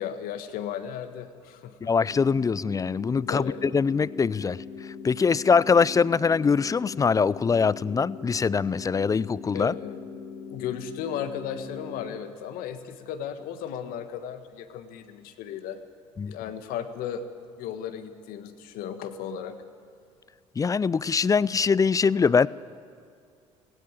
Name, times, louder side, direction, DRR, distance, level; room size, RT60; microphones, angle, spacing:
voice 1, 0.0-1.9 3.3-3.6 9.5-10.0 10.5-15.8 16.2-17.2 17.6-19.6, left 9 dB, 65° left, 9 dB, 1.5 m, -35 dB
voice 2, 1.8-4.6 5.0-9.7 16.2-16.4 20.6-22.5, left 5 dB, 20° left, 21 dB, 0.4 m, -23 dB
sound 1, 2.1-12.1, left 5 dB, 80° left, 2.0 m, -41 dB
17.5 x 17.0 x 8.9 m, 2.3 s
hypercardioid pair, 60°, 16 cm